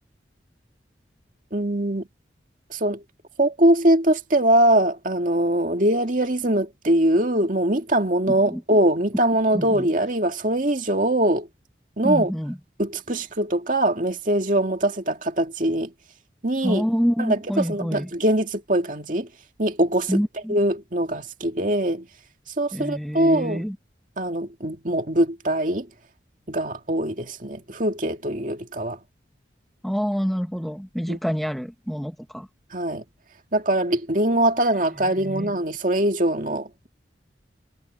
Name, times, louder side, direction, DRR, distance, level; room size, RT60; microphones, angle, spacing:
voice 1, 1.5-2.1 2.7-3.0 3.4-11.5 12.0-12.3 12.8-15.9 16.4-16.9 17.2-19.3 19.6-22.1 22.6-23.7 24.2-25.9 26.5-29.0 31.1-31.2 32.7-33.0 33.5-36.9, right 1 dB, 45° right, 2.2 m, -22 dB
voice 2, 8.3-8.6 9.5-9.9 12.0-12.5 16.6-18.1 20.1-20.6 22.7-23.7 29.8-32.5 35.2-35.5, equal, ahead, 1.0 m, -27 dB
head